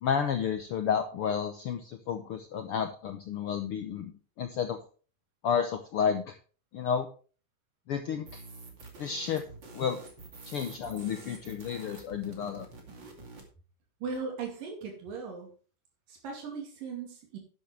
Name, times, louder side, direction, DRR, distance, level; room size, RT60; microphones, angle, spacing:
voice 1, 0.0-4.1 4.4-4.8 5.4-6.3 6.7-7.1 7.9-8.4 9.0-9.4 9.7-10.0 10.4-12.7, left 7 dB, 75° left, 7 dB, 1.3 m, -31 dB
sound 1, 8.2-13.5, right 3 dB, 35° right, 2.8 m, -48 dB
voice 2, 14.0-15.5 16.1-17.4, right 5 dB, 85° right, 1 dB, 4.3 m, -38 dB
12.0 x 9.4 x 3.3 m, 0.38 s
omnidirectional pair, 3.8 m